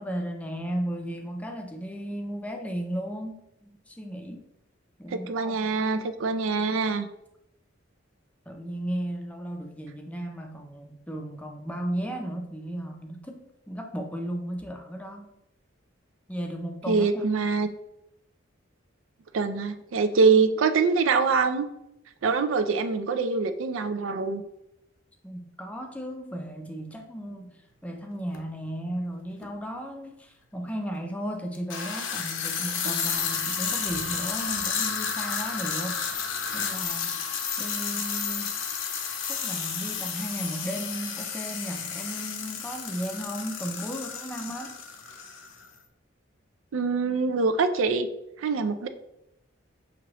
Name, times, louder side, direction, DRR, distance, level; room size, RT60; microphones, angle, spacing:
voice 1, 0.0-4.5 5.0-5.7 8.5-15.3 16.3-17.2 25.2-27.5 27.8-36.0 36.5-37.2 37.6-38.5 39.3-44.8, right 1 dB, 5° left, 3 dB, 0.4 m, -35 dB
voice 2, 5.1-7.1 16.9-17.7 19.3-21.7 22.2-24.4 46.7-48.1 48.4-48.9, right 4 dB, 85° right, 9 dB, 0.4 m, -24 dB
sound 1, 28.3-28.4 29.4-29.5 31.5-45.7, left 6 dB, 70° left, 0.6 m, -32 dB
6.1 x 2.9 x 2.9 m, 0.85 s
head